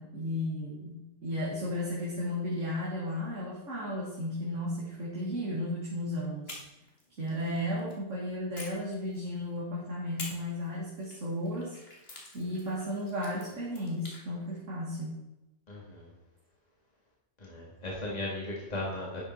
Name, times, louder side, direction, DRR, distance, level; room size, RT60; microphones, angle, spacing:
voice 1, 0.0-6.6 7.2-11.8 12.3-15.1, left 1 dB, 80° right, -6 dB, 2.5 m, -34 dB
sound 1, 6.4-8.0 8.5-9.6 10.2-14.2, left 2 dB, 50° left, 2.5 m, -48 dB
voice 2, 15.7-16.1 17.4-19.2, left 1 dB, 30° left, -3 dB, 2.3 m, -37 dB
11.5 x 7.0 x 4.5 m, 0.96 s
omnidirectional pair, 1.3 m